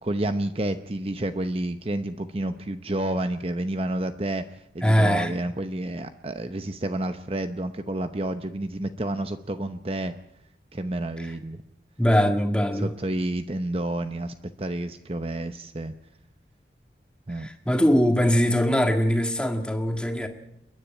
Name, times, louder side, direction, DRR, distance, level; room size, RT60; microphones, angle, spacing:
voice 1, 0.0-10.2 10.7-11.6 12.7-15.9 17.3-17.5, right 1 dB, 35° right, 0.8 m, -30 dB
voice 2, 4.8-5.3 11.2-11.3 12.0-12.9 17.3-20.3, equal, 5° left, 1.8 m, -22 dB
29.0 x 10.0 x 9.9 m
head